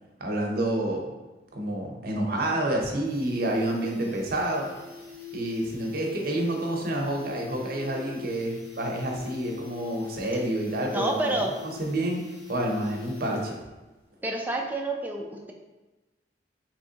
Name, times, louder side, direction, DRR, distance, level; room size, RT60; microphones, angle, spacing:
voice 1, 0.2-1.1 1.5-4.7 5.3-11.3 11.8-13.6, right 1 dB, 55° right, 0 dB, 0.6 m, -28 dB
sound 1, 2.1-2.2 2.5-2.6 2.9-13.7 14.0-14.1, left 9 dB, 65° left, 1.1 m, -43 dB
voice 2, 10.9-11.5 14.2-15.5, right 2 dB, 10° right, 0 dB, 0.3 m, -28 dB
3.5 x 3.0 x 2.7 m, 1.1 s
head